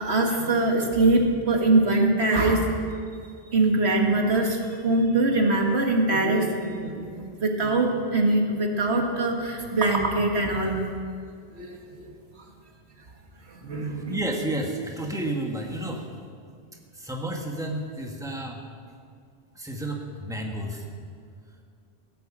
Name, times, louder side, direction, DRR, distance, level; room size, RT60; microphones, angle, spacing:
voice 1, 0.0-2.7 3.5-10.7 11.5-12.1 13.5-14.2, right 2 dB, 85° right, 2 dB, 1.9 m, -23 dB
voice 2, 13.8-16.1 16.9-18.6 19.5-20.8, right 1 dB, 5° right, 0 dB, 1.6 m, -31 dB
16.5 x 9.2 x 7.4 m, 2.2 s
omnidirectional pair, 1.1 m